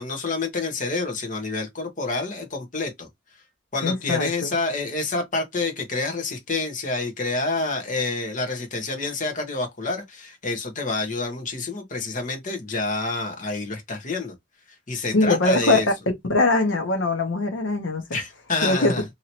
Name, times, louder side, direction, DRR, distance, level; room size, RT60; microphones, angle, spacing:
voice 1, 0.0-3.1 3.7-14.3 14.9-15.9 18.1-19.0, left 3 dB, 40° left, 1.0 m, -28 dB
voice 2, 3.8-4.5 15.1-15.8 16.3-18.0 18.6-18.9, left 2 dB, 75° left, 0.7 m, -21 dB
2.9 x 2.8 x 2.8 m
head